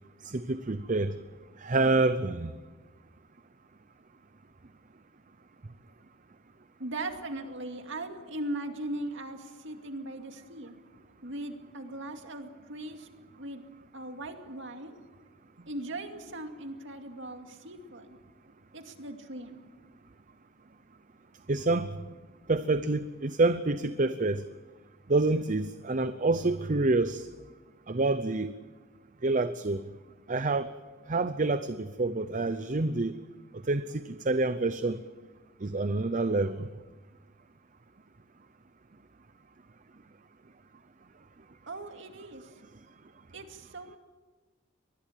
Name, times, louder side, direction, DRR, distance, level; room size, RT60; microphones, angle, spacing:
voice 1, 0.2-1.1 1.6-2.5 21.5-21.9 22.5-24.4 25.1-27.3 27.9-28.6 29.2-29.8 30.3-30.7 31.1-33.2 33.7-35.0 35.6-36.7, right 2 dB, 40° right, 12 dB, 0.7 m, -27 dB
voice 2, 6.8-10.8 11.2-13.1 13.4-13.6 13.9-15.0 15.6-18.2 18.7-19.6 41.7-42.5 43.3-44.0, right 1 dB, 65° right, 5 dB, 2.4 m, -39 dB
24.0 x 20.0 x 7.5 m, 1.3 s
head